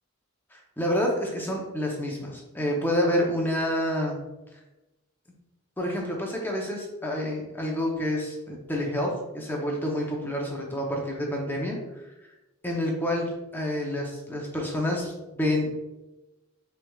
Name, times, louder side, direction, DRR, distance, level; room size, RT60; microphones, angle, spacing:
voice 1, 0.5-4.2 5.8-11.8 12.2-12.3 12.6-15.7, left 1 dB, 10° left, -1 dB, 0.7 m, -28 dB
6.5 x 3.3 x 2.4 m, 1.0 s
head